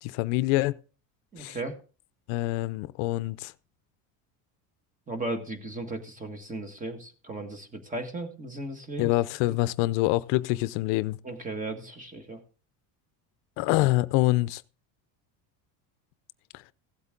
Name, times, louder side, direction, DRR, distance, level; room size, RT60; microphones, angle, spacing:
voice 1, 0.0-0.8 1.4-1.6 2.3-3.5 9.0-11.2 13.6-14.6, left 19 dB, 80° left, 0.6 m, -25 dB
voice 2, 1.3-1.8 5.1-9.1 11.2-12.4, right 2 dB, 20° right, 1.6 m, -36 dB
15.5 x 8.2 x 3.8 m
cardioid pair, 145°, 43 cm